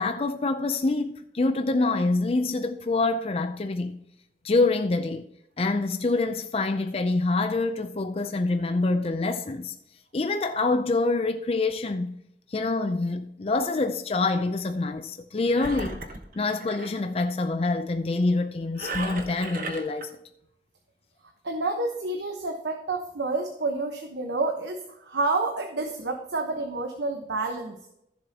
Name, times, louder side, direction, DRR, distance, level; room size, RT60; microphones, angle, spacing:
voice 1, 0.0-4.0 4.4-5.3 5.6-9.8 10.1-12.2 12.5-16.0 16.4-20.1, left 3 dB, 35° left, 0.4 m, -26 dB
Engine, 15.5-17.0 18.8-20.1, right 2 dB, 50° right, 1.1 m, -36 dB
voice 2, 21.4-27.8, right 3 dB, 85° right, 1.1 m, -29 dB
15.0 x 7.1 x 2.9 m
head